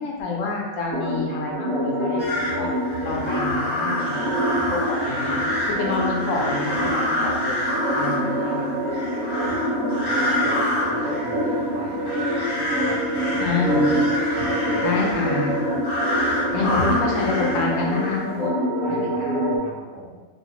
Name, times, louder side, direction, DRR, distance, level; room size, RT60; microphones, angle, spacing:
voice 1, 0.0-2.7 3.0-5.4 5.7-7.6 7.9-8.9 13.4-14.0 14.8-15.7 16.5-19.6, left 4 dB, 70° left, -2 dB, 0.9 m, -28 dB
sound 1, 0.9-19.6, equal, 85° right, 1.1 m, -26 dB
sound 2, 2.2-18.4, left 1 dB, 20° left, 0.8 m, -28 dB
voice 2, 10.0-13.5 14.0-14.9 15.7-15.8 16.5-16.7 18.8-20.2, equal, 60° right, -5 dB, 1.1 m, -39 dB
3.1 x 2.4 x 2.8 m, 1.2 s
omnidirectional pair, 1.5 m